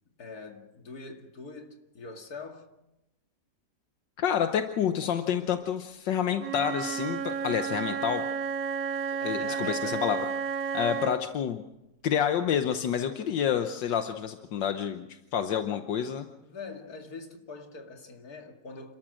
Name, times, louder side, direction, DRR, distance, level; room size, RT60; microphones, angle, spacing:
voice 1, 0.2-2.7 8.9-10.1 16.4-19.0, left 4 dB, 55° left, 2.7 m, -44 dB
voice 2, 4.2-8.2 9.2-10.3 10.7-11.6 12.0-15.1 15.3-16.3, left 9 dB, 80° left, 1.7 m, -28 dB
Wind instrument woodwind instrument, 6.4-11.2, right 6 dB, 75° right, 1.9 m, -32 dB
29.0 x 13.5 x 7.6 m
omnidirectional pair, 1.9 m